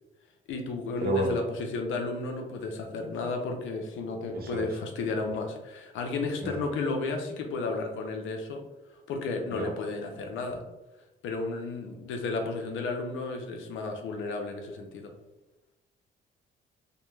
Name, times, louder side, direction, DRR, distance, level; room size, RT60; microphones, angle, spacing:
voice 1, 0.5-1.4 1.7-8.6 9.1-10.6 11.2-15.1, left 3 dB, 75° left, 3 dB, 0.5 m, -33 dB
voice 2, 1.0-1.4 4.3-4.7 6.4-6.7 9.5-9.7, right 1 dB, 50° right, 2 dB, 0.6 m, -30 dB
2.2 x 2.1 x 3.0 m, 1.0 s
cardioid pair, 90°, 20 cm